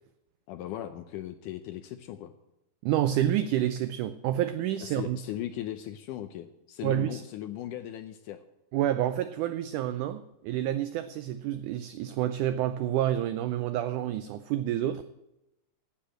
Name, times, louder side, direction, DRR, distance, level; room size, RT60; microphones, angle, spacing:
voice 1, 0.5-2.3 4.8-8.4, left 12 dB, 80° left, 9 dB, 1.9 m, -38 dB
voice 2, 2.8-5.2 6.8-7.2 8.7-15.0, right 12 dB, 90° right, 11 dB, 1.7 m, -29 dB
10.0 x 8.5 x 7.7 m, 0.91 s
omnidirectional pair, 4.2 m